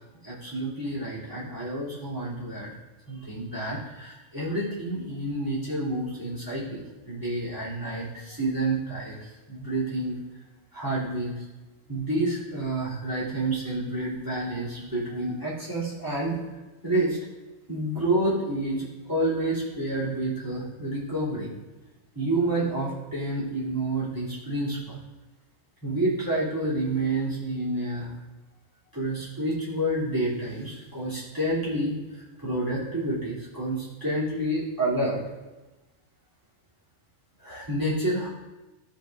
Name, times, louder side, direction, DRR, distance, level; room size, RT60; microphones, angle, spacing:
voice 1, 0.2-2.7 3.1-9.2 9.5-10.1 10.7-11.4 11.9-16.4 16.8-17.2 17.7-21.5 22.1-25.0 25.8-28.1 28.9-35.2 37.4-38.3, right 1 dB, 15° right, -9 dB, 3.3 m, -29 dB
15.5 x 5.5 x 2.6 m, 1.1 s
omnidirectional pair, 1.3 m